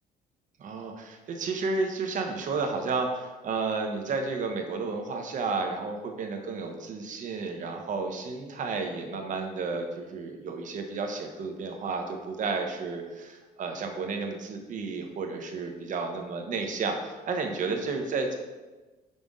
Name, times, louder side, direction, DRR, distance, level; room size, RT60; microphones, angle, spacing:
voice 1, 0.6-18.4, right 4 dB, 50° right, 4 dB, 0.9 m, -32 dB
5.4 x 5.0 x 3.6 m, 1.2 s
cardioid pair, 110°, 17 cm